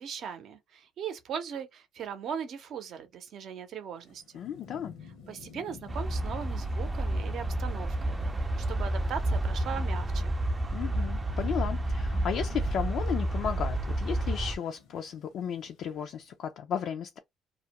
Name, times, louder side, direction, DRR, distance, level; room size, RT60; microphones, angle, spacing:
voice 1, 0.0-4.2 5.3-8.2 8.7-10.3, right 7 dB, 60° right, 0.6 m, -39 dB
Thunderstorm / Rain, 4.0-16.2, left 5 dB, 80° left, 0.8 m, -51 dB
voice 2, 4.3-5.0 10.7-17.2, left 8 dB, 65° left, 0.3 m, -34 dB
sound 1, 5.9-14.6, right 1 dB, 20° right, 0.4 m, -30 dB
2.3 x 2.1 x 2.8 m
cardioid pair, 95°, 0 cm